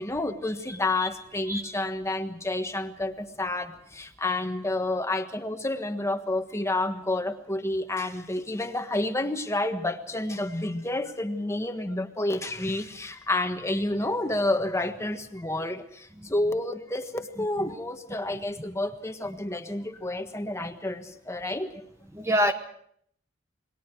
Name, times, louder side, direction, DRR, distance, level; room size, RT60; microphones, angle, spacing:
voice 1, 0.0-21.8, left 2 dB, 15° left, 7 dB, 1.4 m, -30 dB
voice 2, 22.1-22.5, equal, 15° right, 6 dB, 1.2 m, -25 dB
28.0 x 21.5 x 4.7 m, 0.66 s
head